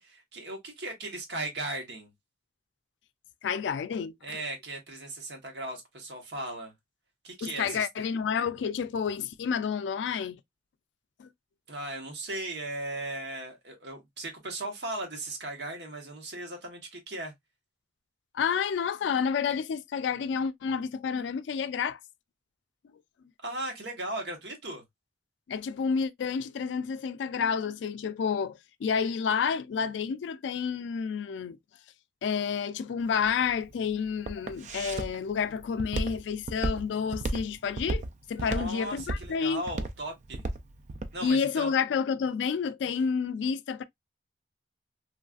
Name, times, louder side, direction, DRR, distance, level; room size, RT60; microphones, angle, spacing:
voice 1, 0.0-2.1 4.2-6.7 7.2-8.1 11.7-17.3 23.4-24.8 38.4-40.4 41.1-41.7, right 2 dB, 70° right, 1.0 m, -37 dB
voice 2, 3.4-4.4 7.4-10.4 11.2-11.3 18.3-22.0 25.5-31.6 32.2-38.0 38.3-39.6 41.2-43.8, left 6 dB, 85° left, 0.3 m, -30 dB
Walk footsteps, 33.0-41.2, right 2 dB, 40° right, 0.3 m, -34 dB
3.1 x 2.3 x 2.3 m
head